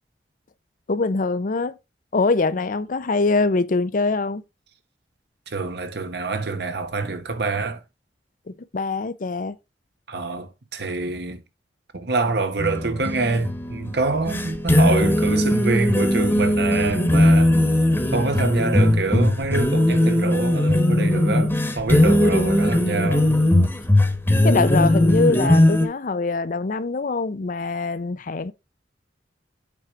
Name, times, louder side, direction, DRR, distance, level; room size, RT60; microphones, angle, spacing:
voice 1, 0.9-1.8 2.1-4.4 8.5-9.6 24.4-28.5, left 3 dB, 50° left, 0.6 m, -23 dB
voice 2, 5.5-7.8 10.1-11.4 11.9-17.6 18.1-23.3, right 3 dB, 65° right, 1.1 m, -26 dB
sound 1, 12.6-25.9, left 1 dB, 15° left, 1.3 m, -19 dB
8.4 x 4.8 x 3.6 m
head